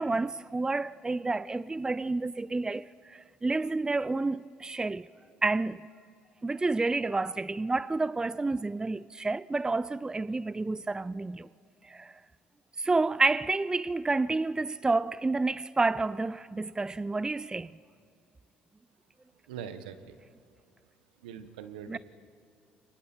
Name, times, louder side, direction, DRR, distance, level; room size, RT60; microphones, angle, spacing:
voice 1, 0.0-5.1 5.4-5.9 6.4-11.5 11.8-12.2 12.8-17.7 21.9-22.0, right 3 dB, 15° right, 0.4 m, -29 dB
voice 2, 19.5-20.2 21.2-22.0, right 8 dB, 85° right, 1.2 m, -42 dB
29.5 x 24.5 x 4.5 m
hypercardioid pair, 60°, 5 cm